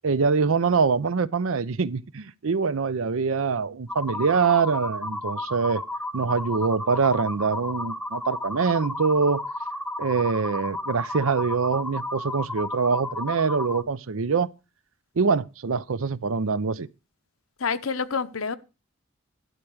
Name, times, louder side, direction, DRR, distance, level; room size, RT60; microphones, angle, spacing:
voice 1, 0.0-5.8 6.1-9.4 10.0-14.5 15.2-16.9, right 5 dB, 80° right, 0.6 m, -24 dB
sound 1, 3.9-13.8, left 1 dB, 5° left, 0.6 m, -33 dB
voice 2, 17.6-18.6, left 5 dB, 85° left, 0.8 m, -27 dB
12.0 x 4.7 x 7.8 m
head